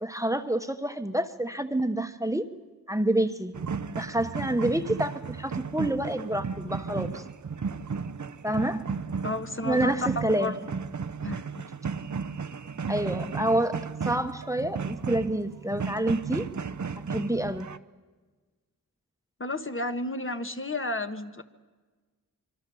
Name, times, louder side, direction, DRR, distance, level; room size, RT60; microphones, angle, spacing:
voice 1, 0.0-2.5 2.9-3.6 3.9-7.2 8.4-9.0 9.6-10.5 12.9-16.5 17.1-17.7, right 1 dB, 10° right, 1.2 m, -28 dB
sound 1, 3.5-17.8, right 5 dB, 55° right, 0.8 m, -34 dB
voice 2, 9.2-9.9 10.3-10.5 11.2-11.6 19.4-21.4, left 2 dB, 35° left, 1.4 m, -32 dB
26.0 x 24.5 x 7.1 m
wide cardioid pair, 85°, 34 cm